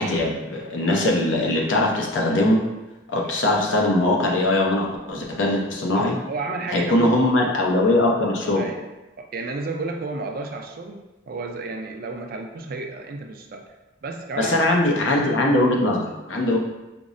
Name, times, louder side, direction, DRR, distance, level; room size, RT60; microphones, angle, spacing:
voice 1, 0.0-2.6 3.1-6.2 6.7-8.7 14.4-16.6, left 1 dB, 85° left, 0 dB, 0.6 m, -21 dB
voice 2, 5.9-7.1 8.6-8.8 9.2-11.0 11.3-13.6 14.0-14.9 16.4-16.6, right 3 dB, 50° right, 3 dB, 0.4 m, -32 dB
5.1 x 2.0 x 2.5 m, 1.0 s
head